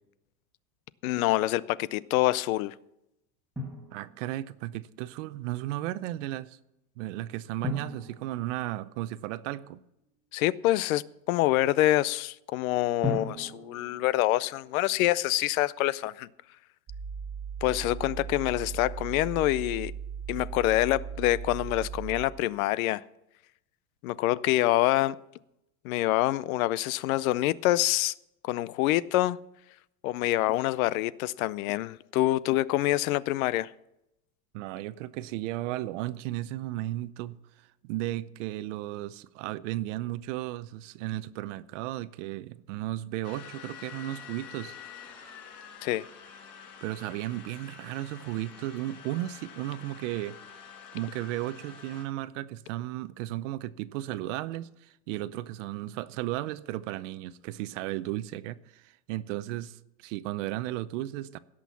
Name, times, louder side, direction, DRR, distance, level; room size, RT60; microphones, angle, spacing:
voice 1, 1.0-2.7 10.3-16.3 17.6-19.9 20.3-23.0 24.0-25.2 25.8-28.1 28.4-29.4 30.0-33.7 45.8-46.1, left 16 dB, 65° left, 0.6 m, -26 dB
Drum, 3.6-4.6 7.6-9.5 13.0-15.0, left 2 dB, 5° right, 1.5 m, -38 dB
voice 2, 3.9-6.6 7.0-9.8 34.5-37.4 37.8-44.8 46.8-50.4 50.9-61.4, right 15 dB, 55° right, 0.6 m, -35 dB
sound 1, 16.9-22.3, right 7 dB, 20° right, 1.3 m, -38 dB
sound 2, 43.2-52.0, left 7 dB, 45° left, 5.5 m, -47 dB
17.0 x 6.2 x 7.0 m
supercardioid pair, 165°, 45 cm